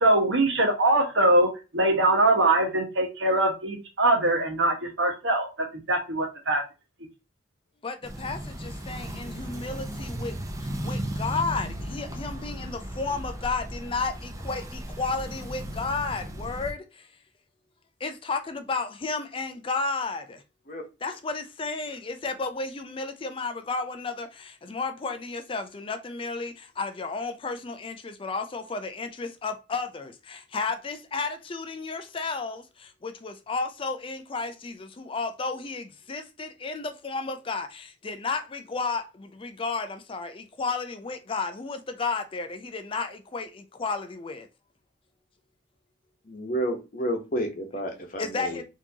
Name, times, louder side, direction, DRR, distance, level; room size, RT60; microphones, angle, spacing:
voice 1, 0.0-1.5 1.7-6.6, right 2 dB, 75° right, 1.4 m, -22 dB
voice 2, 7.8-17.1 18.0-20.4 21.0-44.5 48.2-48.6, left 4 dB, 30° left, 0.4 m, -33 dB
sound 1, 8.0-16.7, equal, 15° right, 0.6 m, -35 dB
voice 3, 46.3-48.6, equal, 45° left, 1.0 m, -30 dB
4.4 x 2.9 x 2.8 m
head